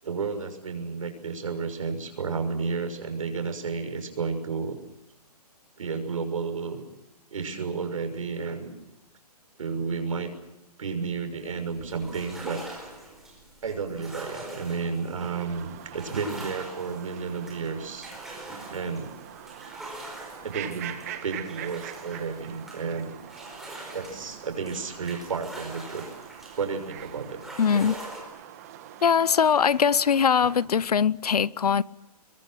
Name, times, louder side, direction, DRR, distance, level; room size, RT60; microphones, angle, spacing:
voice 1, 0.0-4.8 5.8-6.8 7.3-8.7 9.6-10.3 10.8-12.6 13.6-18.1 18.7-19.1 20.4-23.2 23.9-26.1 26.6-27.4, right 5 dB, 55° right, 6.2 m, -32 dB
sound 1, 11.4-28.2, right 1 dB, ahead, 4.7 m, -43 dB
sound 2, 15.2-30.7, right 11 dB, 25° right, 1.6 m, -44 dB
voice 2, 27.6-28.0 29.0-31.8, left 7 dB, 70° left, 0.8 m, -21 dB
28.5 x 22.5 x 7.7 m
hypercardioid pair, 170°, 20 cm